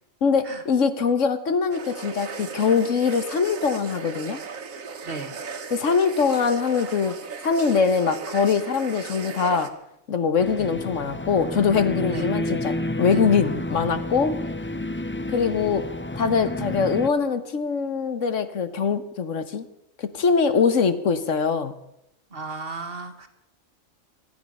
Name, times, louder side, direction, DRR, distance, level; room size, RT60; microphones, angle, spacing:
voice 1, 0.2-4.4 5.7-7.1 7.4-9.7 10.1-14.3 15.3-15.8 16.2-19.7 20.0-21.7, left 5 dB, 70° left, 11 dB, 1.5 m, -23 dB
sound 1, 1.7-9.7, right 5 dB, 90° right, 1.7 m, -37 dB
voice 2, 5.0-5.4 10.6-10.7 12.1-12.3 13.1-13.2 22.3-23.3, right 3 dB, 45° right, 7 dB, 1.8 m, -36 dB
sound 2, 10.4-17.1, left 1 dB, 20° left, 0.3 m, -30 dB
26.0 x 9.6 x 5.4 m, 0.85 s
omnidirectional pair, 1.4 m